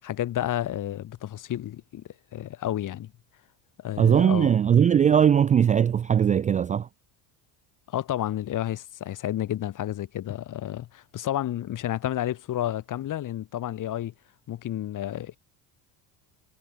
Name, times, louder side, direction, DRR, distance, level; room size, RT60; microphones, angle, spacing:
voice 1, 0.0-2.0 2.3-3.1 3.8-4.5 7.9-14.1 14.5-15.4, left 12 dB, 45° left, 4.8 m, -31 dB
voice 2, 4.0-6.9, right 8 dB, 20° right, 0.3 m, -20 dB
cardioid pair, 140°, 42 cm